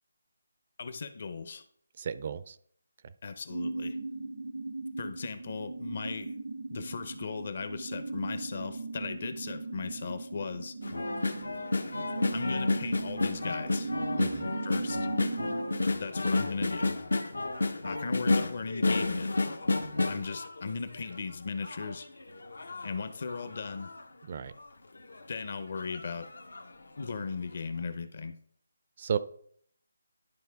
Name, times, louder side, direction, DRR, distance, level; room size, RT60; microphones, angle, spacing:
voice 1, 0.8-1.6 3.2-4.0 5.0-6.3 6.7-10.8 12.3-13.9 14.6-15.1 16.0-16.9 17.8-19.3 20.1-22.1 22.8-23.9 25.3-26.3 27.0-28.4, left 4 dB, 50° left, 11 dB, 0.7 m, -37 dB
voice 2, 2.0-2.6 14.2-14.5 24.3-24.5 29.0-29.2, right 7 dB, 40° right, 15 dB, 0.4 m, -33 dB
sound 1, 3.5-15.8, right 3 dB, 90° right, 1.2 m, -38 dB
sound 2, 10.8-21.2 21.6-24.0 24.6-24.7 25.0-25.2 25.8-26.7 27.1-27.2, left 2 dB, 85° left, 0.9 m, -31 dB
11.5 x 4.4 x 3.4 m, 0.63 s
figure-of-eight pair, 165°, 0 cm